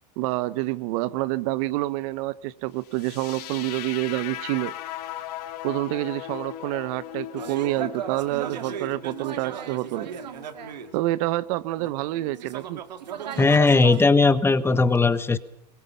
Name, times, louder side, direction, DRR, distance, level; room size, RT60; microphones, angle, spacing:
voice 1, 0.2-4.7 5.6-10.1 10.9-12.8, right 18 dB, 55° right, 0.9 m, -28 dB
sound 1, 2.9-10.9, left 13 dB, 70° left, 1.6 m, -38 dB
sound 2, 7.4-11.3 11.8-14.1, right 9 dB, 85° right, 1.9 m, -36 dB
voice 2, 13.4-15.4, left 3 dB, 10° left, 1.1 m, -18 dB
22.5 x 20.5 x 5.6 m
hypercardioid pair, 110°, 21 cm